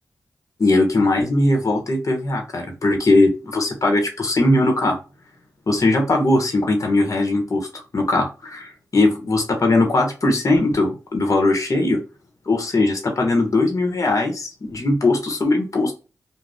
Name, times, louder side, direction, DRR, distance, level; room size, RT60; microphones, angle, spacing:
voice 1, 0.6-5.0 5.7-7.7 7.9-12.0 12.5-15.9, left 2 dB, 55° left, 3 dB, 1.0 m, -19 dB
2.5 x 2.2 x 3.4 m, 0.31 s
cardioid pair, 45°, 7 cm